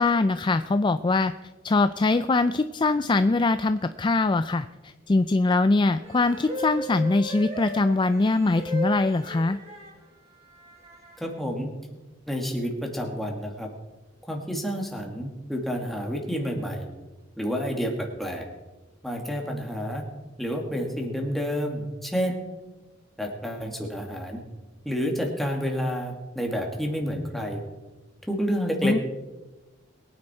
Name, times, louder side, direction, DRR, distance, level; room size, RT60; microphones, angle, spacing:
voice 1, 0.0-1.3 1.6-9.6 28.8-29.0, left 3 dB, 25° left, 11 dB, 0.4 m, -22 dB
sound 1, 6.0-9.9 10.7-11.3, equal, 30° right, 5.2 m, -35 dB
voice 2, 11.2-11.7 12.3-13.7 14.3-16.9 17.4-18.5 19.0-20.0 20.4-22.4 23.2-24.4 24.8-27.6 28.3-29.0, equal, ahead, 1 dB, 2.3 m, -29 dB
22.0 x 9.8 x 4.4 m, 1.1 s
head